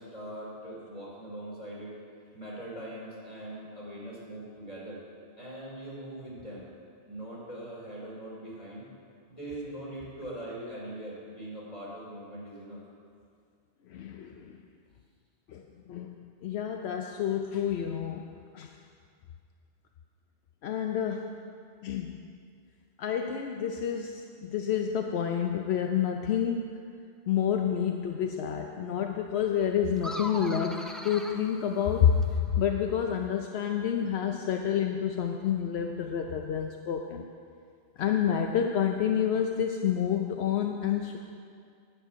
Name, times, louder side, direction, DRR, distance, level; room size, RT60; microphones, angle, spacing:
voice 1, 0.0-2.0 2.3-5.0 5.4-6.7 7.1-8.8 9.3-12.8, right 1 dB, 35° left, -6 dB, 3.5 m, -41 dB
voice 2, 13.9-14.6 15.5-16.1 16.4-18.7 20.6-21.3 21.8-22.2 23.0-26.7 27.3-37.2 38.0-41.2, left 8 dB, 80° left, 3 dB, 0.9 m, -29 dB
sound 1, 30.0-32.5, equal, ahead, 0.4 m, -40 dB
10.0 x 8.5 x 6.1 m, 2.2 s
omnidirectional pair, 1.1 m